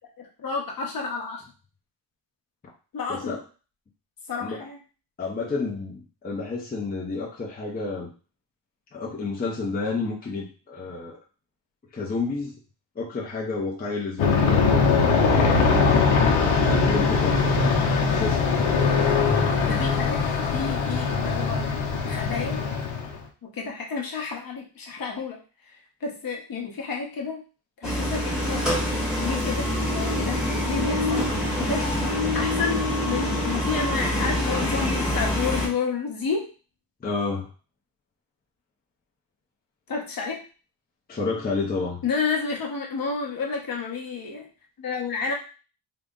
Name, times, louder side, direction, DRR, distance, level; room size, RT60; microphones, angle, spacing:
voice 1, 0.2-1.4 2.9-3.4 4.3-4.8 19.6-20.2 20.5-21.8 22.0-22.6 23.4-25.4 26.0-27.4 27.8-28.7 29.1-31.3 31.6-31.9 32.3-36.5 39.9-40.4 42.0-44.5 44.8-45.3, left 5 dB, 50° left, -1 dB, 0.9 m, -30 dB
voice 2, 5.2-8.1 8.9-11.2 11.9-12.5 13.0-17.7 18.0-18.6 37.0-37.5 41.1-42.0, left 4 dB, 20° left, -3 dB, 0.5 m, -30 dB
Aircraft, 14.2-23.2, left 4 dB, 80° left, 0.8 m, -21 dB
sound 1, 27.8-35.7, left 1 dB, ahead, 0.9 m, -25 dB
3.8 x 2.0 x 3.5 m, 0.36 s
wide cardioid pair, 165°, 47 cm